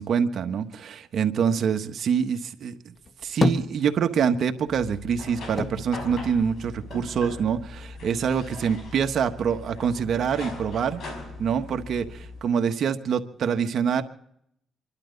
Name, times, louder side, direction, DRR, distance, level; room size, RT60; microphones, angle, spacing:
voice 1, 0.0-2.8 3.2-11.0 11.4-14.0, right 7 dB, 60° right, 7 dB, 1.3 m, -25 dB
sound 1, 2.9-4.4 4.8-7.1 7.5-8.4, left 3 dB, 35° left, 1.0 m, -30 dB
sound 2, 4.7-12.4, left 3 dB, 65° left, 5.4 m, -40 dB
28.0 x 12.0 x 4.0 m, 0.72 s
cardioid pair, 90°, 0 cm